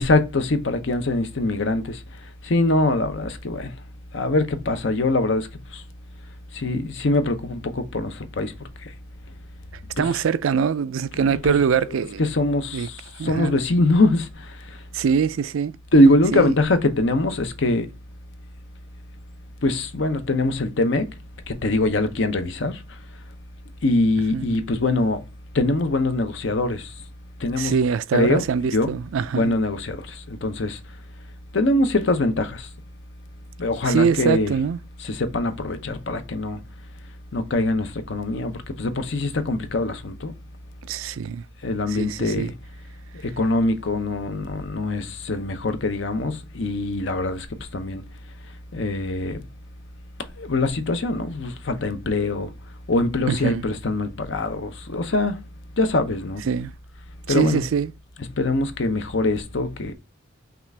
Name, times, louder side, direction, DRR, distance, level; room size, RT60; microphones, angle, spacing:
voice 1, 0.0-1.8 2.5-3.7 4.1-5.4 6.6-8.5 10.0-10.1 11.1-11.6 12.2-12.9 13.2-14.2 15.9-17.9 19.6-21.0 21.5-22.7 23.8-25.2 25.5-26.8 27.4-27.8 28.1-28.4 28.7-28.9 29.3-30.0 30.4-30.8 31.5-32.6 33.6-34.5 35.0-36.6 37.3-38.5 38.8-40.3 41.6-42.5 43.4-47.5 47.7-48.0 48.7-49.4 50.4-52.5 52.9-55.4 55.8-56.4 57.3-57.6 58.4-59.9, left 2 dB, 65° left, 0.7 m, -22 dB
voice 2, 10.0-12.2 12.7-12.9 13.2-13.6 14.9-15.8 16.3-16.5 24.3-24.6 27.6-29.5 33.8-34.8 40.8-41.4 41.9-42.5 53.3-53.7 56.4-56.7 57.3-57.9, right 6 dB, 80° right, 0.4 m, -23 dB
5.8 x 2.4 x 3.3 m
head